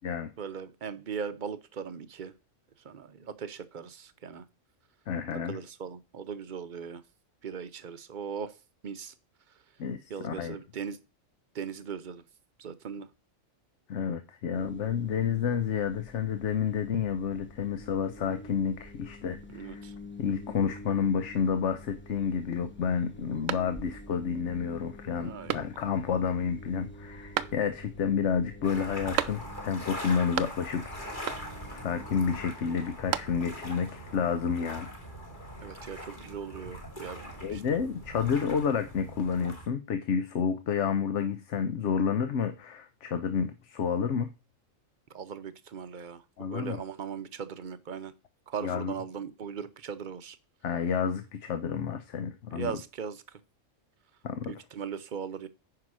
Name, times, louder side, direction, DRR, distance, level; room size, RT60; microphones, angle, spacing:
voice 1, 0.4-2.3 2.8-4.4 5.4-7.0 7.4-8.5 8.8-9.1 10.1-11.0 11.5-12.2 12.6-13.1 19.5-19.9 25.2-25.6 35.6-37.6 45.1-46.2 46.5-48.1 48.5-50.4 52.5-53.4 54.5-55.5, right 7 dB, 45° right, 14 dB, 0.7 m, -39 dB
voice 2, 5.1-5.6 9.8-10.6 13.9-19.8 20.2-34.9 37.4-44.3 46.4-46.8 48.6-48.9 50.6-52.7 54.2-54.5, left 7 dB, 70° left, 9 dB, 1.1 m, -30 dB
sound 1, 14.5-32.5, left 1 dB, 10° left, 0.9 m, -48 dB
sound 2, 23.5-24.2 24.6-24.7 25.5-26.1 27.3-28.0 29.1-29.8 30.0-30.9 31.2-31.7 32.7-33.7, right 11 dB, 85° right, 1.0 m, -35 dB
sound 3, 28.6-39.7, equal, 40° left, 2.4 m, -42 dB
9.5 x 4.9 x 6.1 m, 0.30 s
omnidirectional pair, 1.3 m